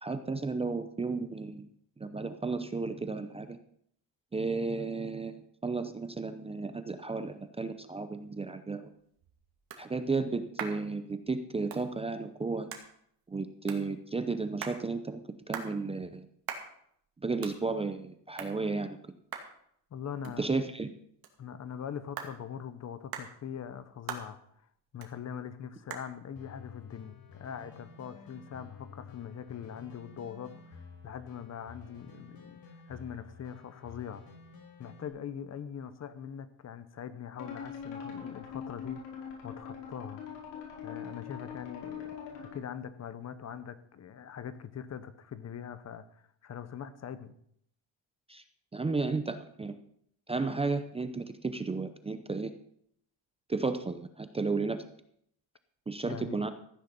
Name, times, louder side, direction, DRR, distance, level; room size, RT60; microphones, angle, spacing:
voice 1, 0.0-1.7 2.0-3.6 4.3-8.8 9.8-12.7 13.3-16.3 17.2-19.0 20.4-20.9 48.3-48.4 48.7-49.7 50.3-52.5 53.5-54.9 55.9-56.5, right 3 dB, 15° right, 9 dB, 0.7 m, -33 dB
sound 1, 8.8-28.1, right 7 dB, 55° right, 2.5 m, -47 dB
voice 2, 19.9-20.5 21.4-24.4 24.9-34.2 34.8-39.0 39.4-40.2 40.8-42.2 42.4-47.4 56.1-56.4, left 8 dB, 40° left, 13 dB, 1.0 m, -42 dB
sound 2, 26.4-35.1, left 5 dB, 55° left, 4.3 m, -51 dB
sound 3, 37.4-42.6, left 7 dB, 85° left, 5.1 m, -42 dB
14.5 x 9.5 x 5.4 m, 0.69 s
cardioid pair, 135°, 42 cm